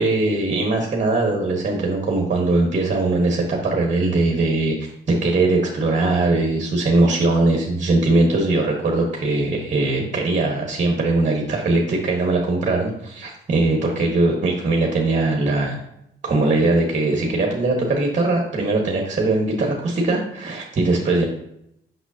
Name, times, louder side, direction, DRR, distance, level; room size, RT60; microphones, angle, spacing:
voice 1, 0.0-4.7 5.1-15.8 16.2-21.2, right 2 dB, 35° right, 0 dB, 1.3 m, -20 dB
6.1 x 5.8 x 2.7 m, 0.76 s
cardioid pair, 90°, 20 cm